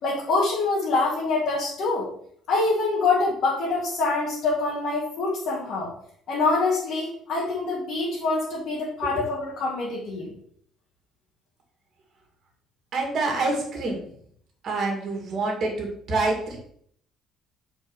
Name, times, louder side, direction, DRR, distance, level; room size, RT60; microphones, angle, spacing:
voice 1, 0.0-2.1 2.5-5.9 6.3-10.3, left 3 dB, 50° left, -5 dB, 1.9 m, -25 dB
voice 2, 12.9-14.0 14.6-16.6, right 3 dB, 40° right, 1 dB, 2.0 m, -26 dB
7.2 x 4.5 x 4.5 m, 0.64 s
cardioid pair, 170°, 0 cm